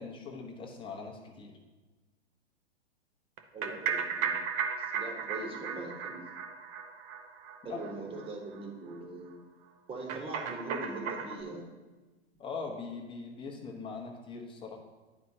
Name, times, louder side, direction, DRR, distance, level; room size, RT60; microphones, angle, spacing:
voice 1, 0.0-1.5 7.7-8.1 12.4-14.8, left 4 dB, 15° left, 0 dB, 1.1 m, -41 dB
sound 1, 3.4-7.9 8.2-8.3 8.6-8.7 8.9-9.0 10.1-11.4, right 6 dB, 30° right, 0.7 m, -35 dB
voice 2, 3.5-4.4 4.8-6.2 7.6-9.4 9.9-11.6, right 2 dB, 15° right, 1 dB, 1.3 m, -41 dB
11.0 x 4.2 x 2.8 m, 1.2 s
figure-of-eight pair, 115°, 36 cm